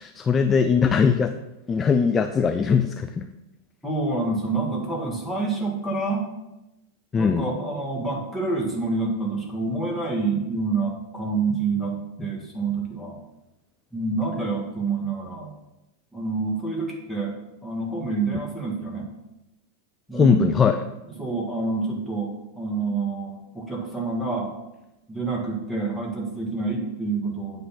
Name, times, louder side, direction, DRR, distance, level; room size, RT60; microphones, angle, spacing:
voice 1, 0.0-1.4 1.7-3.3 7.1-7.5 20.1-20.8, left 6 dB, 20° left, 8 dB, 0.3 m, -20 dB
voice 2, 3.8-6.3 7.1-13.2 13.9-15.5 16.1-17.4 17.6-19.1 20.1-20.5 21.2-24.5 25.1-27.6, right 3 dB, ahead, -3 dB, 1.9 m, -27 dB
8.5 x 3.3 x 6.1 m, 0.98 s
figure-of-eight pair, 90°, 0 cm